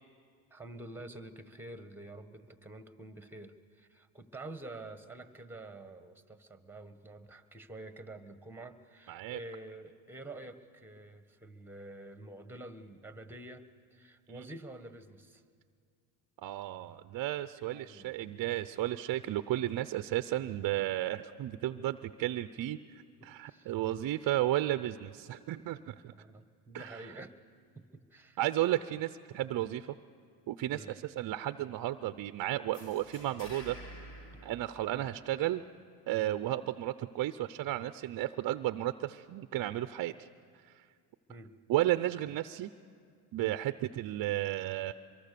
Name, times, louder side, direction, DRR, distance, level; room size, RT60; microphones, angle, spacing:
voice 1, 0.5-13.6 13.9-15.4 17.7-18.5 22.6-22.7 23.2-23.7 26.1-27.4 27.7-28.4 30.7-30.9 34.9-35.1 41.3-41.5, right 2 dB, 5° right, 10 dB, 1.3 m, -48 dB
voice 2, 9.1-9.4 14.3-14.5 16.4-22.8 23.2-26.1 26.7-27.1 28.4-29.9 30.5-33.8 34.4-35.6 36.1-40.3 40.6-40.8 41.7-42.7 43.3-44.9, right 14 dB, 45° right, 12 dB, 0.6 m, -33 dB
sound 1, 32.7-35.5, equal, 60° left, 4.1 m, -50 dB
23.5 x 23.5 x 6.8 m, 2.2 s
supercardioid pair, 95°, 48 cm